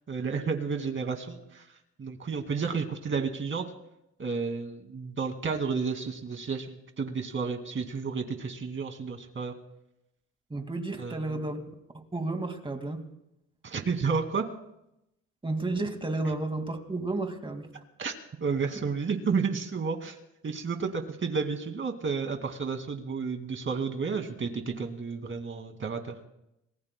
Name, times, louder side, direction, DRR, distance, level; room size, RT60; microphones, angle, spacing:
voice 1, 0.1-1.7 2.0-3.6 4.2-9.5 11.0-11.4 13.6-14.4 18.0-18.1 18.4-20.2 20.4-26.1, right 5 dB, 40° right, 5 dB, 2.3 m, -31 dB
voice 2, 10.5-11.6 11.9-13.1 15.4-17.7, right 2 dB, 15° right, 5 dB, 2.2 m, -32 dB
27.0 x 20.0 x 2.3 m, 0.85 s
cardioid pair, 90°, 30 cm